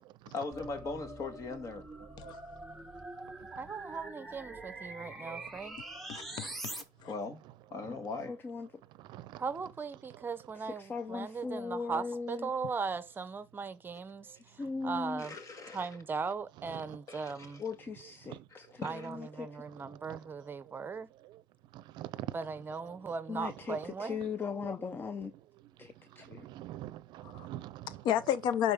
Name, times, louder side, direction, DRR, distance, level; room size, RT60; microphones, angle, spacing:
voice 1, 0.3-1.8 7.1-7.4 7.7-8.4 15.2-15.9 17.1-17.5 18.5-19.1, left 3 dB, 45° left, 1.8 m, -40 dB
sound 1, 0.5-6.8, right 1 dB, ahead, 1.4 m, -44 dB
voice 2, 3.6-5.8 9.4-15.4 15.7-17.6 18.8-21.1 22.3-24.2, right 5 dB, 30° right, 0.7 m, -38 dB
voice 3, 6.1-7.1 27.2-27.5 28.0-28.7, left 10 dB, 75° left, 0.6 m, -32 dB
voice 4, 8.3-8.7 10.6-12.5 14.6-15.2 17.6-19.5 23.3-25.3 25.8-26.4, left 5 dB, 25° left, 0.5 m, -39 dB
voice 5, 9.1-9.4 16.9-17.0 18.3-18.4 19.9-20.2 21.7-22.3 24.6-24.7 26.4-28.0, right 14 dB, 75° right, 0.5 m, -44 dB
11.0 x 4.1 x 3.5 m
cardioid pair, 120°, 8 cm